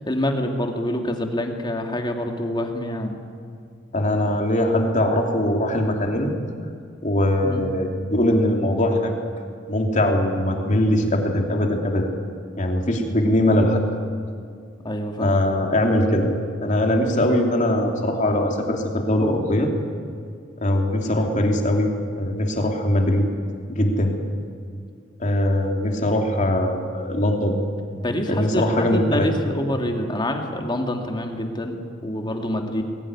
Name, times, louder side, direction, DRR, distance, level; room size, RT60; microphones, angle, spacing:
voice 1, 0.1-3.1 7.4-7.6 14.8-15.4 21.0-21.3 28.0-32.8, left 1 dB, 25° left, 3 dB, 2.3 m, -26 dB
voice 2, 3.9-6.3 7.0-9.1 9.7-12.1 12.6-13.8 15.2-16.3 16.6-19.7 20.6-21.9 22.1-23.3 23.7-24.2 25.2-27.6 28.3-29.3, left 1 dB, 40° left, 2 dB, 3.0 m, -21 dB
21.5 x 17.0 x 9.8 m, 2.2 s
head